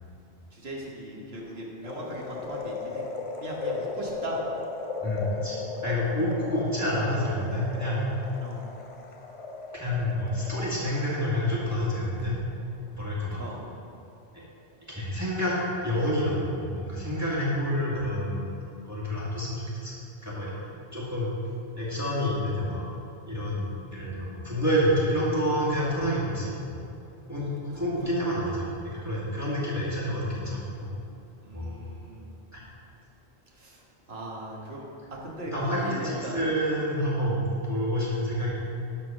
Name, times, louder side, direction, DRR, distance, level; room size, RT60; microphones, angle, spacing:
voice 1, 0.5-3.0 3.4-4.4 8.4-8.6 13.4-13.6 18.4-18.5 28.0-28.1 31.4-32.3 33.6-33.8 34.1-34.9 35.2-36.4, right 1 dB, 65° right, -3 dB, 1.8 m, -38 dB
sound 1, 1.8-12.1 12.5-12.6, left 4 dB, 40° left, 0.5 m, -37 dB
voice 2, 5.0-8.1 9.7-12.4 12.9-13.4 14.3-14.4 14.9-15.6 15.8-18.5 18.8-19.9 20.2-20.5 20.9-21.3 21.8-22.9 23.3-26.8 27.3-27.4 27.7-30.9 31.5-31.8 32.5-32.6 35.5-38.5, equal, 15° right, -8 dB, 2.2 m, -28 dB
12.0 x 4.6 x 6.2 m, 2.6 s
omnidirectional pair, 1.1 m